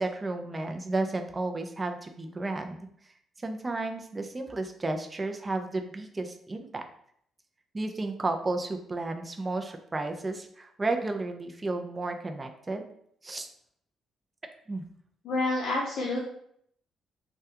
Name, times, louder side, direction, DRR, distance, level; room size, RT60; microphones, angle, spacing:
voice 1, 0.0-2.8 3.4-6.8 7.7-12.9 13.2-13.5 14.7-14.8, right 2 dB, 25° right, 5 dB, 0.4 m, -32 dB
voice 2, 15.2-16.2, left 2 dB, 70° left, -4 dB, 0.6 m, -28 dB
3.4 x 2.2 x 2.8 m, 0.67 s
cardioid pair, 90°, 0 cm